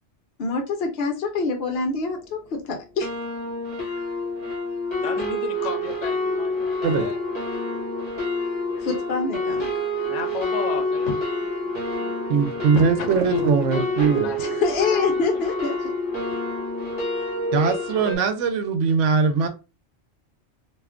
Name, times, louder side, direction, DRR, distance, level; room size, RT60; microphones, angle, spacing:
voice 1, 0.4-3.1 8.8-9.7 14.4-15.9, left 4 dB, 65° left, 0.8 m, -26 dB
sound 1, 1.8-1.9 2.1-2.5 3.0-18.1, left 1 dB, 25° left, 1.2 m, -27 dB
voice 2, 5.0-7.2 8.4-8.8 10.1-14.5 14.9-15.2 15.6-15.7, left 5 dB, 90° left, 0.9 m, -35 dB
voice 3, 12.3-14.3 17.5-19.5, right 5 dB, 85° right, 0.9 m, -21 dB
2.5 x 2.3 x 3.4 m
omnidirectional pair, 1.2 m